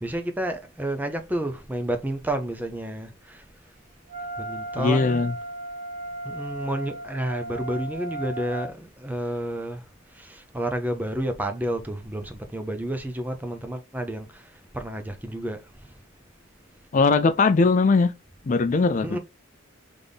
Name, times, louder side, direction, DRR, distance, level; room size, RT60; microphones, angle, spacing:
voice 1, 0.0-3.4 4.4-5.2 6.2-16.0 19.0-19.2, right 1 dB, 10° right, 0.6 m, -30 dB
Wind instrument woodwind instrument, 4.1-8.7, right 1 dB, 35° right, 1.0 m, -35 dB
voice 2, 4.8-5.3 16.9-18.1 18.5-19.1, left 4 dB, 40° left, 0.3 m, -20 dB
3.5 x 3.4 x 3.9 m
head